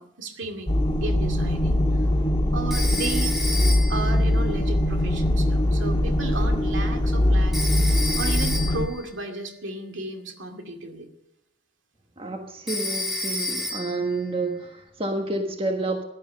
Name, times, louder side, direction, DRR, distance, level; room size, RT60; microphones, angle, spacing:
voice 1, 0.0-1.8 2.5-3.4 3.9-11.1, right 2 dB, 65° right, 4 dB, 2.3 m, -34 dB
sound 1, 0.7-8.9, left 1 dB, 25° left, 1.5 m, -22 dB
Telephone, 2.7-4.1 7.5-8.9 12.7-14.1, left 2 dB, ahead, 2.1 m, -30 dB
voice 2, 12.2-16.0, right 2 dB, 30° right, 3 dB, 1.4 m, -29 dB
16.5 x 11.5 x 6.6 m, 0.87 s
head